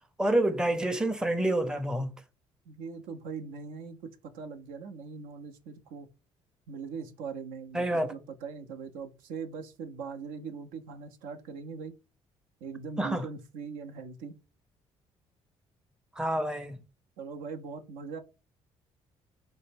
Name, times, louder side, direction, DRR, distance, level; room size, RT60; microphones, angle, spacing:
voice 1, 0.2-2.1 7.7-8.1 13.0-13.3 16.2-16.8, right 1 dB, 5° right, 0.5 m, -28 dB
voice 2, 2.7-6.1 6.7-12.0 12.6-14.4 17.2-18.2, right 5 dB, 70° right, 0.5 m, -41 dB
4.0 x 2.1 x 3.4 m
hypercardioid pair, 45°, 15 cm